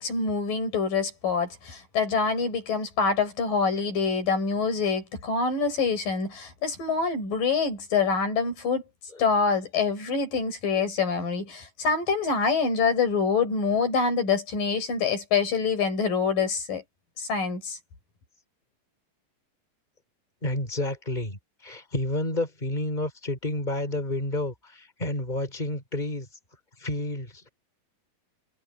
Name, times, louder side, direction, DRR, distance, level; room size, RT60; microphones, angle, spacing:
voice 1, 0.0-8.8 9.2-16.8 17.2-17.8, left 5 dB, 65° left, 6.9 m, -26 dB
voice 2, 20.4-26.3 26.8-27.4, left 1 dB, 10° left, 5.7 m, -30 dB
omnidirectional pair, 4.1 m